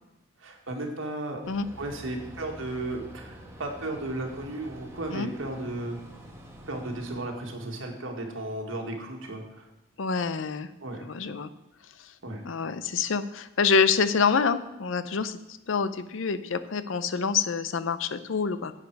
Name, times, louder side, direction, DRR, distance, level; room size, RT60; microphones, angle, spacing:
voice 1, 0.4-1.4 1.8-6.0 6.7-9.7 10.8-11.1 12.2-12.5, right 2 dB, 75° right, 2 dB, 1.8 m, -34 dB
sound 1, 1.4-7.2, equal, 15° right, 1.5 m, -46 dB
voice 2, 10.0-10.7 11.0-11.5 12.4-15.4 15.7-18.7, left 5 dB, 70° left, 13 dB, 0.6 m, -26 dB
10.5 x 8.3 x 4.7 m, 0.96 s
head